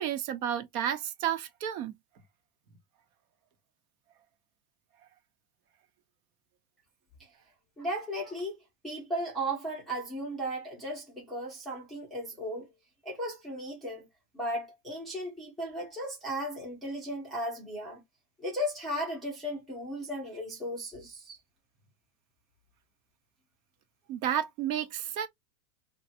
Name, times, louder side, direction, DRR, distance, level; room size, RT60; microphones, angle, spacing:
voice 1, 0.0-1.9 24.1-25.3, right 10 dB, 65° right, 0.9 m, -31 dB
voice 2, 7.8-8.5 8.8-12.7 13.0-14.1 14.3-18.0 18.4-21.4, equal, ahead, 0.5 m, -35 dB
3.2 x 2.2 x 2.7 m
supercardioid pair, 165°, 45 cm